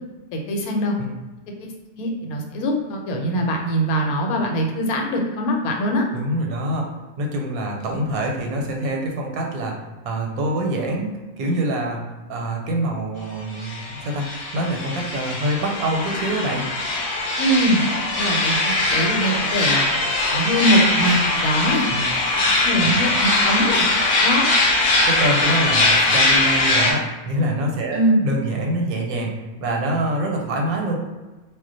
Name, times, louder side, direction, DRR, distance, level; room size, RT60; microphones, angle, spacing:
voice 1, 0.3-1.0 1.6-6.1 17.4-17.9 18.2-19.9 20.3-21.9 22.6-23.9 24.2-24.5 27.9-28.2, equal, 85° left, 2 dB, 1.1 m, -22 dB
voice 2, 6.1-6.9 7.2-12.0 12.3-16.6 21.9-22.0 22.8-23.1 25.1-31.0, right 1 dB, 90° right, 0 dB, 1.1 m, -25 dB
sound 1, 13.5-26.9, left 2 dB, 65° left, 0.5 m, -21 dB
2.3 x 2.1 x 3.8 m, 1.2 s
omnidirectional pair, 1.5 m